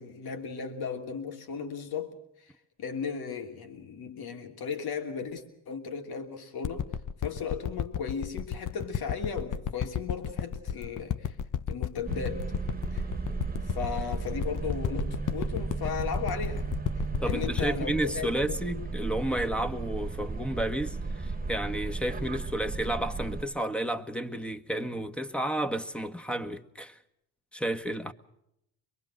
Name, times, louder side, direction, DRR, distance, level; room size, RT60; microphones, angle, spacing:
voice 1, 0.0-2.2 2.4-2.5 2.8-6.9 7.2-11.3 11.7-12.5 12.9-13.0 13.6-18.6, left 6 dB, 70° left, 3.2 m, -36 dB
sound 1, 6.6-19.4 20.0-20.1, left 9 dB, 50° left, 1.1 m, -33 dB
sound 2, 12.0-23.5, right 4 dB, 25° right, 1.7 m, -35 dB
voice 2, 17.2-27.0 27.5-28.1, right 1 dB, 5° left, 1.5 m, -31 dB
24.0 x 22.5 x 6.4 m
cardioid pair, 75°, 38 cm